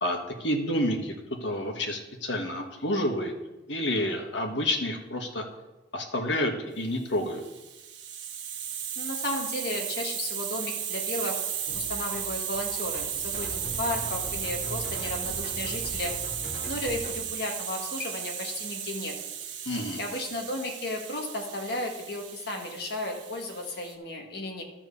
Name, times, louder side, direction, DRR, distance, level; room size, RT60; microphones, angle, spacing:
voice 1, 0.0-1.1 1.4-3.3 3.7-5.4 5.9-7.4 19.6-20.0, left 1 dB, 90° left, 3 dB, 1.5 m, -29 dB
Hiss, 7.3-23.9, right 9 dB, 85° right, 1.2 m, -35 dB
voice 2, 9.0-11.5 11.7-16.1 16.7-19.1 20.0-24.6, left 2 dB, 60° left, 2 dB, 1.8 m, -34 dB
sound 1, 11.7-17.2, right 1 dB, 45° left, 2.4 m, -40 dB
12.5 x 4.6 x 6.9 m, 1.1 s
head